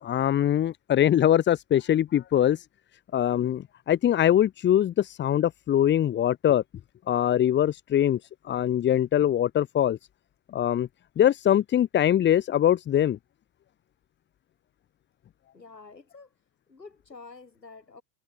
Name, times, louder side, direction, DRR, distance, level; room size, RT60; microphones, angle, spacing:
voice 1, 0.0-2.6 3.1-6.6 7.1-8.2 8.4-10.0 10.5-10.9 11.2-13.2, left 11 dB, 20° left, 1.3 m, -22 dB
voice 2, 15.5-16.3 16.7-18.0, left 4 dB, 85° left, 5.6 m, -48 dB
figure-of-eight pair, 85°, 49 cm